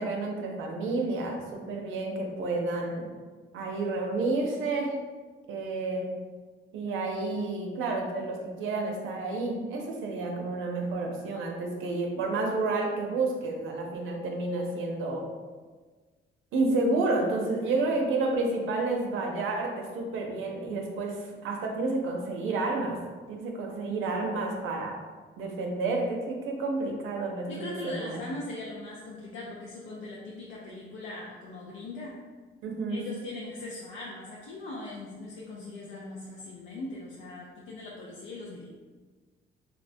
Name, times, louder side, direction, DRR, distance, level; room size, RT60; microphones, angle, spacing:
voice 1, 0.0-3.1 3.5-5.0 5.5-6.2 6.7-15.3 16.5-23.0 23.3-25.0 25.4-28.2 32.6-33.1, right 3 dB, 85° right, 1 dB, 0.6 m, -30 dB
voice 2, 27.5-32.2 32.9-38.7, left 2 dB, 90° left, -4 dB, 0.5 m, -40 dB
4.2 x 2.1 x 2.6 m, 1.4 s
cardioid pair, 90°, 20 cm